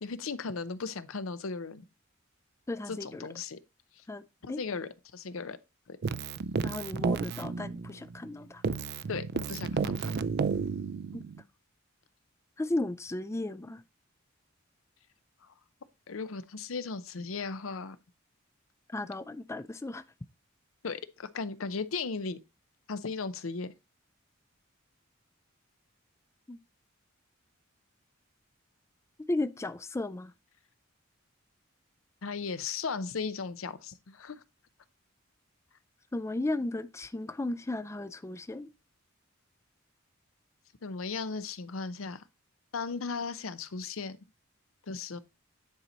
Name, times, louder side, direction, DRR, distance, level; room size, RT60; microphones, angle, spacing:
voice 1, 0.0-1.8 2.9-3.6 4.4-5.6 5.9-6.0 9.1-10.2 16.1-18.0 20.8-22.4 22.9-23.7 32.2-34.4 40.8-42.2 42.7-44.2 44.9-45.2, left 4 dB, 80° left, 0.7 m, -36 dB
voice 2, 2.7-3.3 4.1-4.2 4.5-4.6 6.6-8.6 11.1-11.2 12.6-13.8 18.9-20.0 26.5-26.6 29.3-30.3 36.1-38.7, left 2 dB, 15° left, 0.4 m, -35 dB
Keyboard (musical), 6.0-8.3 8.6-11.4, right 5 dB, 50° right, 0.4 m, -32 dB
9.7 x 4.4 x 3.9 m
head